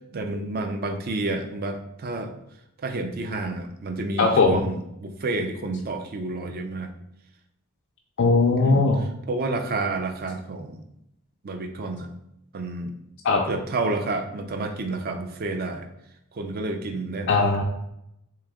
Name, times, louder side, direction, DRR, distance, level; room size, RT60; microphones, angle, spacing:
voice 1, 0.1-2.4 2.8-6.9 8.6-8.9 9.3-10.8 11.4-12.1 12.5-12.9 13.5-15.9 16.3-17.3, right 2 dB, 45° right, 6 dB, 0.4 m, -30 dB
voice 2, 4.2-4.6 8.2-9.0 13.2-13.4 17.3-17.6, left 3 dB, 55° left, 0 dB, 0.4 m, -19 dB
3.3 x 3.1 x 3.6 m, 0.81 s
head